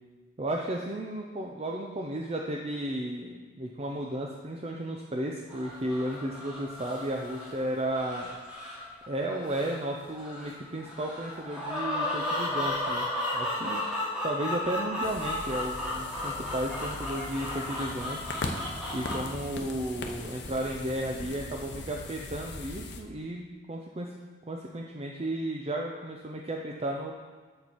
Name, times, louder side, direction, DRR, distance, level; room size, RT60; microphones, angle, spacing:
voice 1, 0.4-8.4 9.1-13.1 13.3-13.8 14.2-18.3 18.9-24.1 24.5-27.1, right 1 dB, 30° right, 1 dB, 0.5 m, -34 dB
sound 1, 5.5-19.2, left 1 dB, 5° right, 1.8 m, -34 dB
sound 2, 15.0-23.0, left 2 dB, 60° left, 0.8 m, -39 dB
7.2 x 6.6 x 4.5 m, 1.4 s
head